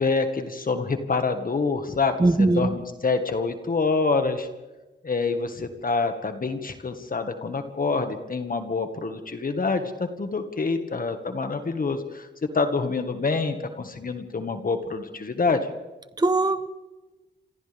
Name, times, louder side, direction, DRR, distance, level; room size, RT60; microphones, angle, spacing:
voice 1, 0.0-4.5 5.0-15.7, left 4 dB, 50° left, 7 dB, 1.7 m, -26 dB
voice 2, 2.2-2.7 16.2-16.7, right 2 dB, 20° right, 10 dB, 1.2 m, -20 dB
29.0 x 26.5 x 3.6 m, 1.1 s
cardioid pair, 75°, 19 cm